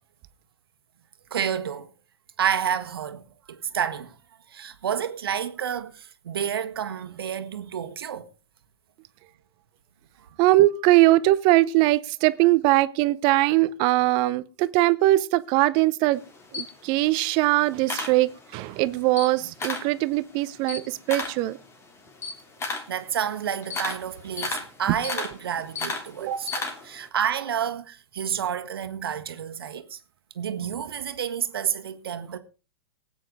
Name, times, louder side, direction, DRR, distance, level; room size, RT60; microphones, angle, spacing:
voice 1, 1.3-1.9 2.4-4.1 4.5-8.3 22.9-26.5 26.8-30.0 30.3-32.4, right 8 dB, 70° right, 1.5 m, -29 dB
voice 2, 10.4-16.2 16.5-21.6, right 17 dB, 40° right, 0.7 m, -21 dB
Camera, 16.1-18.7 19.0-20.0 20.3-27.1, left 3 dB, 20° left, 3.0 m, -34 dB
19.5 x 9.0 x 3.9 m
figure-of-eight pair, 105°, 13 cm